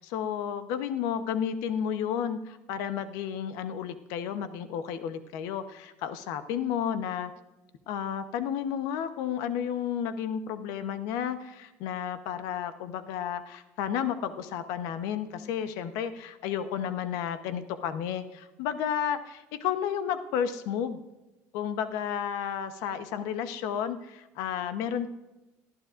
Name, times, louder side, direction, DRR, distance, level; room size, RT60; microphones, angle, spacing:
voice 1, 0.0-7.3 7.9-21.0 21.5-25.1, left 8 dB, 80° left, 10 dB, 0.9 m, -32 dB
19.0 x 12.0 x 2.5 m, 1.0 s
cardioid pair, 125°, 6 cm